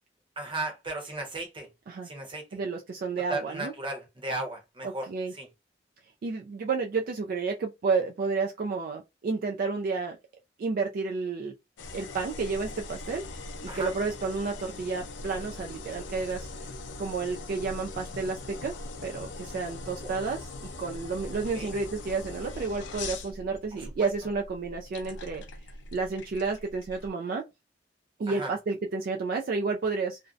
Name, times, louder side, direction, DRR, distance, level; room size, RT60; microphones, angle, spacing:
voice 1, 0.4-1.7 2.0-2.6 3.3-5.5 13.7-13.9 19.6-19.7 20.0-20.1 21.5-21.7 23.7-24.1 28.3-28.5, right 2 dB, 30° right, 0.8 m, -36 dB
voice 2, 2.5-3.7 4.8-5.3 6.2-10.2 10.6-11.5 11.9-13.2 13.6-16.7 17.0-18.7 19.0-25.4 25.9-27.4 28.2-30.2, right 4 dB, 55° right, 0.3 m, -31 dB
sound 1, 11.8-27.1, left 3 dB, 80° left, 0.4 m, -41 dB
2.5 x 2.1 x 2.3 m
head